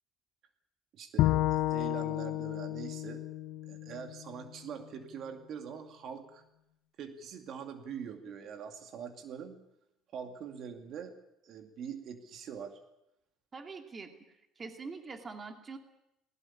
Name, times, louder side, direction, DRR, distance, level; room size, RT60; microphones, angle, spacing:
voice 1, 0.9-3.2 3.6-6.4 7.0-9.6 10.1-11.1 11.4-12.8, right 7 dB, 55° right, 5 dB, 2.4 m, -43 dB
Bowed string instrument, 1.2-4.5, left 15 dB, 70° left, 0.7 m, -31 dB
voice 2, 13.5-14.1 14.6-15.8, right 4 dB, 30° right, 5 dB, 2.6 m, -43 dB
19.5 x 18.0 x 8.7 m, 0.87 s
cardioid pair, 105°, 0 cm